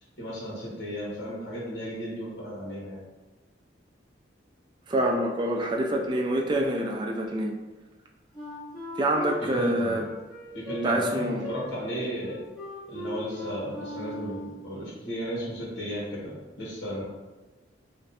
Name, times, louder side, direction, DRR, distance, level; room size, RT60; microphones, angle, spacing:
voice 1, 0.2-3.0 9.4-10.0 10.5-12.4 12.9-17.0, equal, 65° left, -6 dB, 1.0 m, -34 dB
voice 2, 4.9-7.5 9.0-10.0 10.8-11.5, right 1 dB, 25° right, 0 dB, 0.3 m, -26 dB
Wind instrument woodwind instrument, 8.3-14.6, left 2 dB, 20° left, 1.1 m, -38 dB
2.5 x 2.1 x 3.9 m, 1.2 s
head